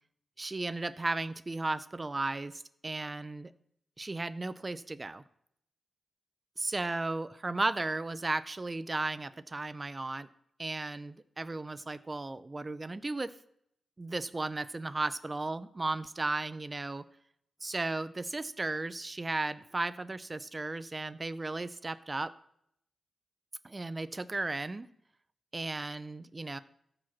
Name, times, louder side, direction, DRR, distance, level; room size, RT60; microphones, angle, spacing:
voice 1, 0.4-3.5 4.0-5.2 6.6-10.3 10.6-13.3 14.0-17.0 17.6-22.3 23.6-24.9 25.5-26.6, right 2 dB, 25° right, 15 dB, 0.5 m, -35 dB
14.5 x 4.9 x 6.0 m, 0.73 s
cardioid pair, 80°, 0 cm